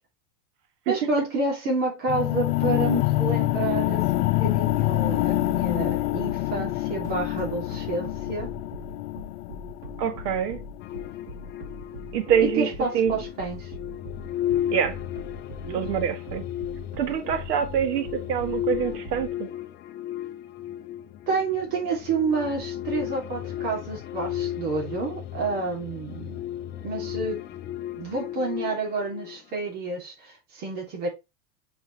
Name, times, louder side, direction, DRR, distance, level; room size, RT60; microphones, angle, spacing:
voice 1, 0.9-8.5 12.4-13.7 15.6-15.8 21.3-26.4 26.8-27.4 27.9-31.1, right 3 dB, 75° right, 3.0 m, -29 dB
sound 1, 2.1-12.1, left 17 dB, 60° left, 0.8 m, -26 dB
sound 2, 7.0-19.3, equal, 55° right, 2.8 m, -41 dB
voice 2, 10.0-10.6 12.1-13.1 14.7-15.0 15.7-16.5 17.0-19.5, right 8 dB, 90° right, 1.4 m, -25 dB
sound 3, 10.8-29.7, left 12 dB, 25° left, 0.5 m, -34 dB
6.3 x 5.3 x 3.2 m
supercardioid pair, 145°, 47 cm